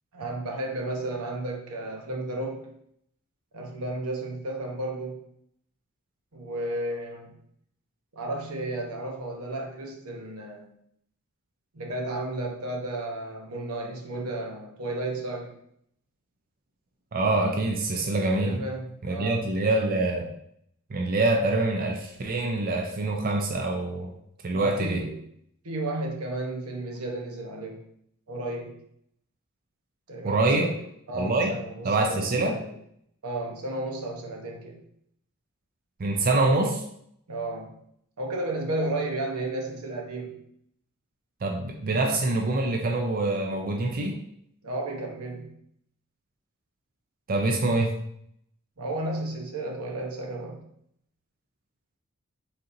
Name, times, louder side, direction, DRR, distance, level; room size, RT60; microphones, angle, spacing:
voice 1, 0.1-2.7 3.5-5.2 6.3-7.3 8.1-10.7 11.7-15.5 18.4-19.4 24.5-25.2 25.6-27.9 28.3-28.8 30.1-30.8 31.1-32.7 33.2-34.8 37.3-37.8 38.2-40.4 44.6-45.5 48.8-50.6, right 2 dB, 90° right, 1 dB, 0.9 m, -33 dB
voice 2, 17.1-18.6 19.0-20.3 20.9-24.1 24.4-25.0 30.2-30.7 31.2-31.5 31.8-32.6 36.0-36.8 41.4-44.2 47.3-48.0, right 2 dB, 40° right, 2 dB, 0.4 m, -25 dB
4.1 x 3.8 x 2.6 m, 0.71 s
head